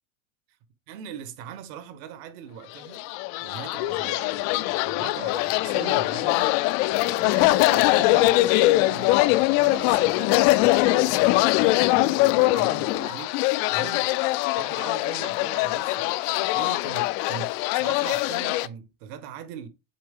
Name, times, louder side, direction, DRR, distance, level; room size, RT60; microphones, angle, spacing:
voice 1, 0.9-3.1 3.4-6.7 7.0-14.1 14.5-19.7, right 8 dB, 70° right, 1.6 m, -41 dB
sound 1, 2.8-18.7, left 19 dB, 60° left, 0.5 m, -22 dB
7.5 x 4.8 x 3.7 m
supercardioid pair, 135°, 41 cm